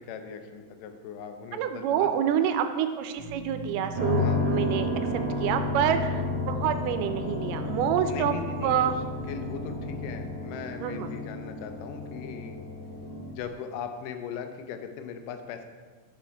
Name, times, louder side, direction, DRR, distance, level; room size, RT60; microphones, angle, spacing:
voice 1, 0.0-2.1 4.2-4.4 8.1-8.8 9.3-12.6 13.3-15.6, left 7 dB, 90° left, 7 dB, 2.2 m, -39 dB
voice 2, 1.5-8.4 8.6-9.0 10.8-11.1, right 9 dB, 90° right, 9 dB, 2.2 m, -27 dB
sound 1, 3.2-10.3, equal, ahead, 1.2 m, -43 dB
sound 2, 3.9-13.4, left 2 dB, 50° right, 0.5 m, -31 dB
6.9 x 4.7 x 4.4 m, 1.5 s
omnidirectional pair, 3.7 m